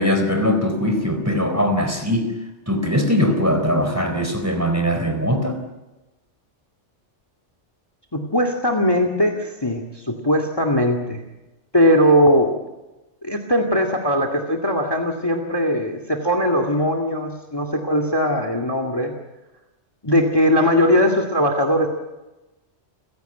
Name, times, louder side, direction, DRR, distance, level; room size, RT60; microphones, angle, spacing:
voice 1, 0.0-2.3 2.7-5.6, left 1 dB, 15° right, 6 dB, 4.1 m, -21 dB
voice 2, 8.1-11.2 11.7-12.6 13.2-19.1 20.0-21.9, equal, 20° left, 3 dB, 2.1 m, -19 dB
29.5 x 16.5 x 9.2 m, 1.1 s
omnidirectional pair, 1.2 m